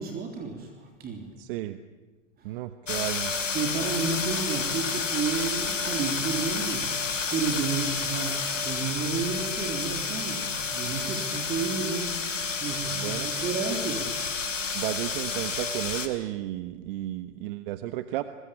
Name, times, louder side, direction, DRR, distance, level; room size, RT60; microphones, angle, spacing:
voice 1, 0.0-1.3 2.4-2.6 3.5-14.1, right 5 dB, 25° right, 3 dB, 3.7 m, -32 dB
voice 2, 1.4-1.8 2.4-3.3 13.0-13.3 14.7-18.2, right 15 dB, 45° right, 11 dB, 1.2 m, -33 dB
sound 1, 2.9-16.1, left 4 dB, 90° left, 3.2 m, -30 dB
26.5 x 21.5 x 8.8 m, 1.2 s
hypercardioid pair, 115°, 37 cm